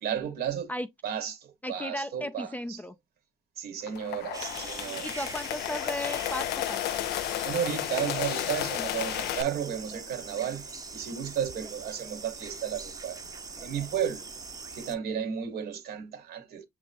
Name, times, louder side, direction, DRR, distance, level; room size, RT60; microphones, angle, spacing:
voice 1, 0.0-0.7 1.0-2.8 3.6-5.1 7.4-13.2 13.6-14.2 14.7-16.6, right 9 dB, 70° right, 1.5 m, -33 dB
voice 2, 1.6-2.9 5.0-6.8, left 1 dB, 10° left, 0.4 m, -35 dB
sound 1, 3.8-9.4, left 14 dB, 70° left, 0.5 m, -33 dB
sound 2, 4.3-15.0, right 4 dB, 20° right, 0.7 m, -42 dB
6.2 x 3.0 x 2.6 m
cardioid pair, 110°, 17 cm